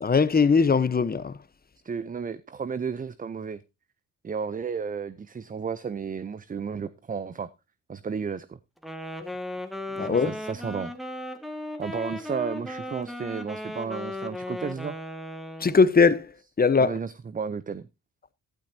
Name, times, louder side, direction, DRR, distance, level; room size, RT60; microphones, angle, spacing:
voice 1, 0.0-1.4 10.0-10.4 15.6-16.3 16.6-17.0, left 5 dB, 25° left, 0.9 m, -20 dB
voice 2, 1.8-3.6 4.2-7.5 7.9-8.6 10.0-10.9 11.8-15.0 16.8-17.9, right 6 dB, 25° right, 0.6 m, -33 dB
Wind instrument woodwind instrument, 8.8-15.9, left 1 dB, ahead, 1.8 m, -36 dB
12.0 x 11.5 x 2.7 m
supercardioid pair, 65°, 35 cm